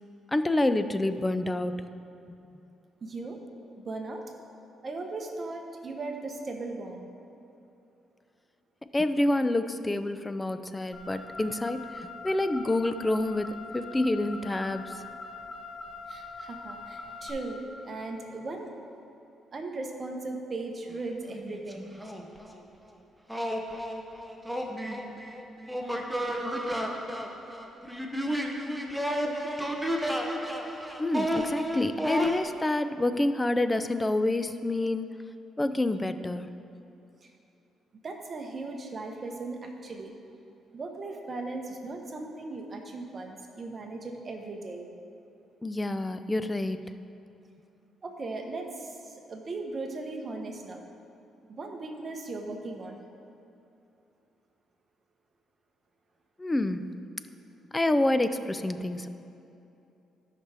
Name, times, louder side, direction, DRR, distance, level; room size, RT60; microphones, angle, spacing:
voice 1, 0.3-2.0 8.9-14.9 31.0-35.1 35.6-36.5 45.6-46.9 56.4-56.9 57.7-59.1, left 2 dB, 15° left, 11 dB, 0.4 m, -28 dB
voice 2, 3.0-3.4 3.8-4.2 4.8-7.1 16.1-18.7 19.5-21.9 38.0-40.1 40.7-44.9 48.0-50.8 51.5-53.0, right 3 dB, 35° right, 3 dB, 1.1 m, -37 dB
Car, 10.9-17.3, left 3 dB, 35° left, 2.0 m, -42 dB
sound 1, 20.9-21.0 21.3-22.6 23.3-32.4, equal, 5° right, 0.8 m, -32 dB
13.5 x 5.8 x 3.4 m, 2.8 s
cardioid pair, 105°, 0 cm